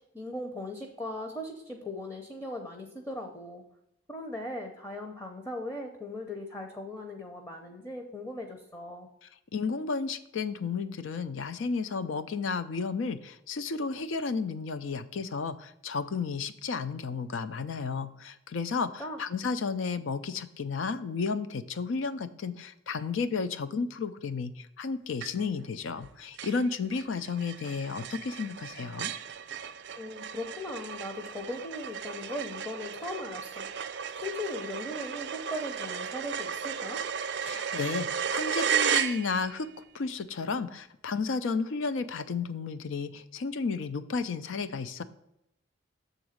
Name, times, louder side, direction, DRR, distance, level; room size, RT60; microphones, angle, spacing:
voice 1, 0.1-3.6 4.1-9.1 19.0-19.2 29.9-33.7 34.1-37.1, left 1 dB, 15° left, 3 dB, 0.6 m, -38 dB
voice 2, 9.5-29.1 37.4-39.7 39.9-45.0, left 4 dB, 85° left, 13 dB, 0.5 m, -32 dB
sound 1, 25.2-25.7 26.0-26.1 26.4-39.7, right 7 dB, 60° right, 0.4 m, -34 dB
7.0 x 3.8 x 6.4 m, 0.82 s
head